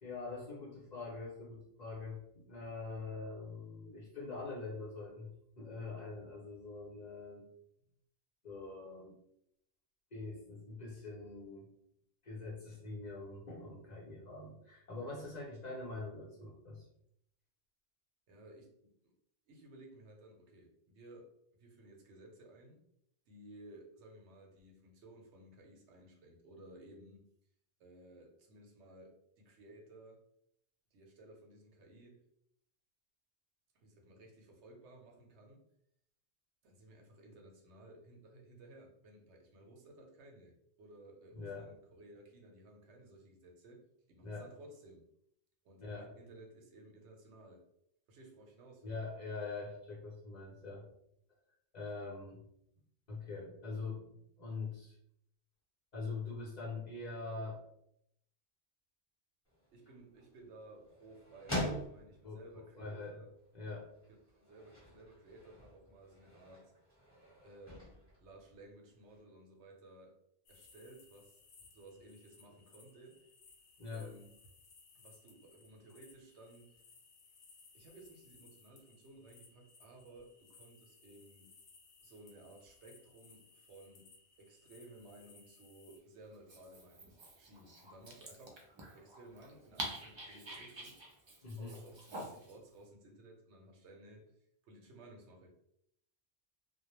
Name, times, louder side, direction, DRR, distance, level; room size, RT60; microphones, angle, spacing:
voice 1, 0.0-5.3 5.6-7.5 8.4-9.2 10.1-11.7 12.2-16.8 41.3-41.7 44.2-44.5 45.8-46.1 48.8-50.9 51.7-52.4 53.1-54.1 54.4-55.0 55.9-57.6 62.2-62.4 62.8-63.2 63.5-63.9 73.8-74.1 91.4-91.8, left 3 dB, 45° left, -4 dB, 0.7 m, -44 dB
voice 2, 18.3-19.1 19.5-22.8 23.3-27.2 27.8-30.2 30.9-32.2 33.7-35.6 36.6-40.5 40.8-45.0 45.6-47.7 48.1-49.0 59.7-63.3 64.4-66.7 67.4-70.2 70.5-71.4 71.7-73.2 73.9-74.3 74.9-76.7 77.7-81.5 82.0-84.1 84.4-88.6 88.9-91.0 91.6-94.3 94.6-95.6, right 1 dB, 85° right, 1 dB, 0.9 m, -57 dB
sound 1, 59.4-69.2, left 1 dB, 10° left, 0.9 m, -46 dB
sound 2, 70.4-86.0, left 4 dB, 85° left, 0.9 m, -63 dB
Dog, 86.3-92.6, right 1 dB, 45° right, 0.3 m, -48 dB
2.2 x 2.1 x 2.9 m, 0.74 s
omnidirectional pair, 1.1 m